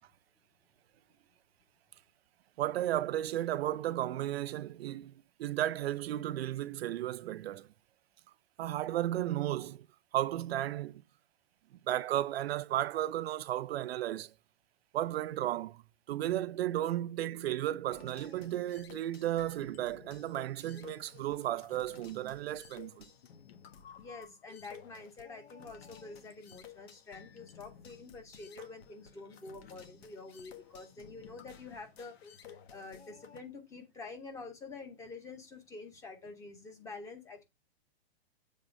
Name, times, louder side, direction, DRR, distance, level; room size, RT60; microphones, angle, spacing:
voice 1, 2.6-5.1 5.4-7.7 8.6-9.9 10.1-11.0 11.9-14.3 14.9-23.1, right 13 dB, 75° right, 0.5 m, -34 dB
sound 1, 17.9-33.4, left 7 dB, 75° left, 1.3 m, -54 dB
voice 2, 24.0-37.4, left 3 dB, 10° left, 0.8 m, -48 dB
7.5 x 3.5 x 5.1 m
hypercardioid pair, 165°, 31 cm